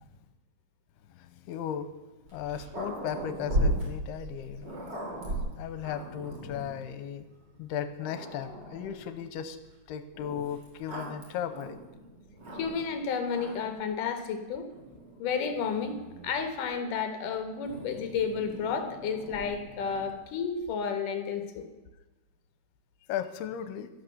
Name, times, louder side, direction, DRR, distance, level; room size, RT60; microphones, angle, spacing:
voice 1, 1.1-1.9 2.3-7.3 7.6-9.6 9.9-11.8 23.1-23.9, left 9 dB, 80° left, 11 dB, 2.7 m, -36 dB
Growling, 2.3-6.8 7.5-7.6 8.0-9.1 10.1-13.0 13.3-13.8 14.7-16.5 17.6-20.2, right 1 dB, 30° right, 3.2 m, -37 dB
voice 2, 12.5-14.7 15.2-21.7, left 6 dB, 65° left, 8 dB, 2.5 m, -32 dB
12.5 x 12.0 x 6.7 m, 1.1 s
omnidirectional pair, 4.7 m